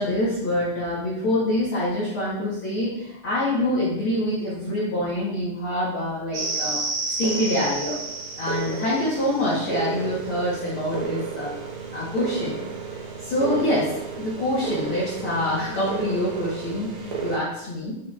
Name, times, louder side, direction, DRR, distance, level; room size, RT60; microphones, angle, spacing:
voice 1, 0.0-6.8 7.2-8.0 8.4-11.5 11.9-12.6 12.9-18.0, left 1 dB, 50° left, -8 dB, 1.9 m, -26 dB
sound 1, 6.3-17.4, right 5 dB, 65° right, 1.4 m, -31 dB
6.9 x 5.7 x 2.5 m, 0.83 s
omnidirectional pair, 3.4 m